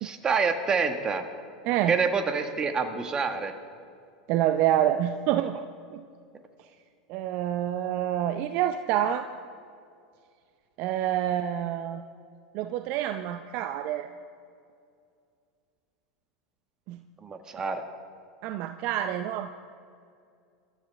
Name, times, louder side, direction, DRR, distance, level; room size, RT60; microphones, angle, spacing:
voice 1, 0.0-1.2 1.9-3.5 17.2-17.8, right 5 dB, 25° right, 6 dB, 1.7 m, -27 dB
voice 2, 4.3-5.6 5.9-6.0 7.1-9.3 10.8-12.0 12.5-14.1 16.9-17.0 18.4-19.5, right 11 dB, 50° right, 9 dB, 0.6 m, -27 dB
26.5 x 13.5 x 3.6 m, 2.3 s
hypercardioid pair, 85°, 3 cm